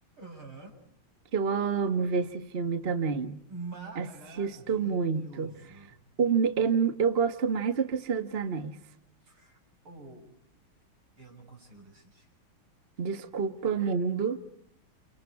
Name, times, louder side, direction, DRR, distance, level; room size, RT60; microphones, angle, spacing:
voice 1, 0.2-0.8 3.5-6.0 9.2-9.6 9.8-10.3 11.2-12.3, right 3 dB, 85° right, 7.9 m, -46 dB
voice 2, 1.3-3.4 4.0-4.1 4.4-5.5 6.2-8.8 13.0-14.5, right 6 dB, 30° right, 1.4 m, -28 dB
30.0 x 29.5 x 4.8 m
omnidirectional pair, 2.3 m